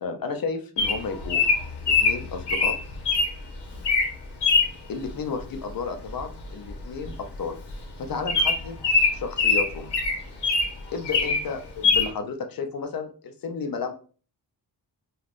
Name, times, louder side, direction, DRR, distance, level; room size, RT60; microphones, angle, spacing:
voice 1, 0.0-1.4 2.0-2.8 4.9-7.6 8.0-8.8 9.1-9.9 10.9-13.9, left 5 dB, 60° left, 6 dB, 0.5 m, -32 dB
Bird vocalization bird call bird song, 0.8-3.3 3.8-4.1 4.4-4.7 6.2-6.4 6.7-6.8 7.0-7.2 7.7-7.8 8.3-10.7 11.1-11.4 11.8-12.1, left 4 dB, 85° left, 0.9 m, -22 dB
3.4 x 2.3 x 2.4 m, 0.39 s
wide cardioid pair, 105°, 40 cm